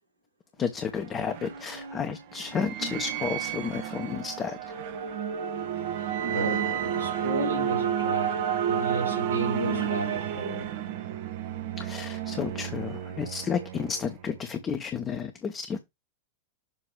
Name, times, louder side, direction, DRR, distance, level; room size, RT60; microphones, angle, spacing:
voice 1, 0.6-4.6 11.8-15.8, left 6 dB, 25° left, 1.0 m, -32 dB
sound 1, 0.7-14.4, right 9 dB, 50° right, 0.8 m, -31 dB
voice 2, 6.0-10.8, right 1 dB, 90° left, 3.3 m, -33 dB
7.3 x 3.0 x 4.6 m
figure-of-eight pair, 90°, 0 cm